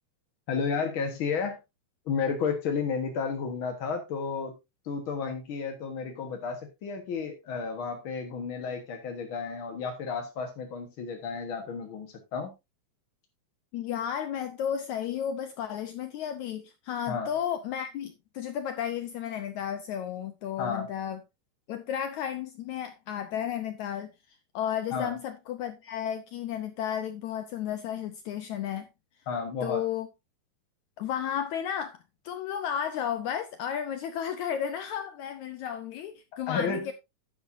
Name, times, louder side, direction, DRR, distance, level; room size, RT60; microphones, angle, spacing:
voice 1, 0.5-1.6 2.1-4.6 4.8-12.5 17.1-17.3 20.6-20.9 24.9-25.2 29.3-29.8 36.5-36.9, left 5 dB, 60° left, 1.4 m, -32 dB
voice 2, 13.7-21.2 21.7-24.1 24.5-28.9 29.6-30.1 31.0-32.0 32.2-36.9, left 9 dB, 80° left, 1.7 m, -33 dB
10.5 x 10.0 x 2.6 m
omnidirectional pair, 4.2 m